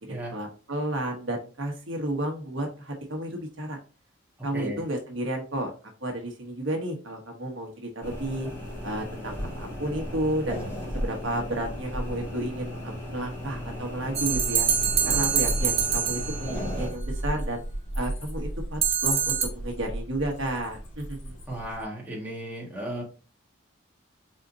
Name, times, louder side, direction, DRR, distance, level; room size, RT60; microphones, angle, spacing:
voice 1, 0.0-3.8 4.4-5.7 6.0-8.5 8.8-10.6 10.9-14.7 15.0-17.6 17.9-21.4, right 1 dB, 75° right, 2 dB, 1.2 m, -32 dB
voice 2, 4.5-4.9 21.5-23.0, right 1 dB, 10° right, -5 dB, 1.7 m, -35 dB
sound 1, 8.0-16.9, equal, 15° left, 2.3 m, -35 dB
sound 2, 14.2-16.7 18.8-19.5, right 8 dB, 30° right, 0.7 m, -25 dB
sound 3, 14.3-21.8, equal, 65° left, 2.2 m, -35 dB
4.2 x 4.0 x 2.6 m, 0.34 s
head